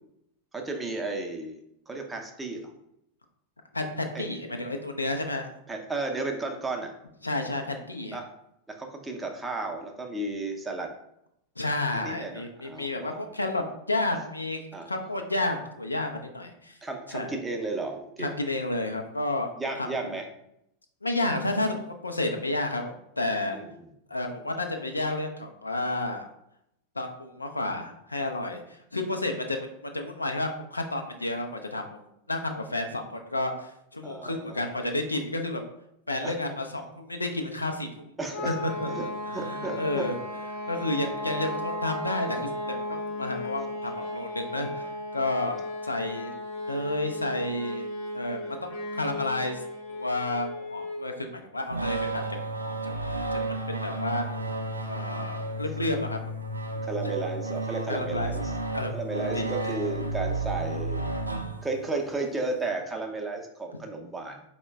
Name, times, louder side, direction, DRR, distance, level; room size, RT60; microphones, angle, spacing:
voice 1, 0.5-1.6 1.9-2.7 4.1-4.3 5.7-6.9 8.1-8.3 8.7-10.9 11.9-13.2 14.7-15.0 16.8-18.4 19.6-20.3 23.5-23.9 34.0-34.7 36.2-36.4 38.2-38.6 38.9-39.1 39.3-40.1 48.4-48.6 56.8-58.5 58.9-61.1 61.6-64.4, right 3 dB, 10° right, 2 dB, 0.6 m, -33 dB
voice 2, 3.7-5.5 7.2-8.2 11.6-14.6 14.9-16.7 17.1-17.3 18.2-19.5 19.8-19.9 21.0-23.6 24.1-26.2 27.0-35.6 36.1-38.1 38.4-38.7 39.3-40.2 40.7-42.8 43.1-45.6 45.8-46.3 46.7-47.9 48.1-49.6 49.9-52.7 53.3-54.3 54.9-56.2 57.9-58.3 58.7-58.9 59.3-59.7 63.7-63.8, left 2 dB, 80° left, 4 dB, 0.4 m, -31 dB
sound 1, 38.3-51.1, left 1 dB, 55° left, 0.8 m, -35 dB
sound 2, 51.7-62.0, right 2 dB, 85° right, 0.3 m, -32 dB
4.5 x 2.1 x 3.3 m, 0.79 s
figure-of-eight pair, 90°, 0 cm